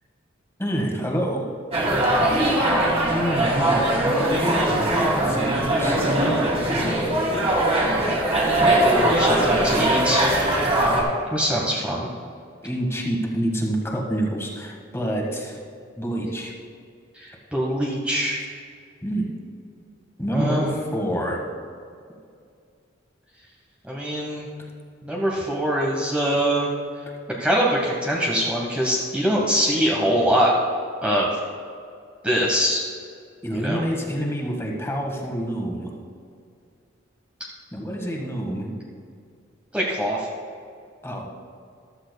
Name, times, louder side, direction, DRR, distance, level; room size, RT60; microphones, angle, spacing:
voice 1, 0.6-1.4 3.0-7.5 12.6-15.6 16.0-16.5 19.0-19.3 20.2-21.4 27.1-27.2 33.4-35.9 37.7-38.7 41.0-41.3, equal, 15° left, 0 dB, 1.6 m, -27 dB
sound 1, 1.7-11.0, right 1 dB, 35° right, 2.5 m, -21 dB
voice 2, 1.9-2.6 8.4-10.3 11.3-12.1 17.1-18.4 20.3-20.7 23.9-24.5 25.0-26.7 27.4-30.5 31.0-31.3 32.2-32.8 33.6-33.8 39.7-40.3, equal, 5° right, -4 dB, 1.1 m, -23 dB
14.5 x 12.5 x 2.3 m, 2.3 s
head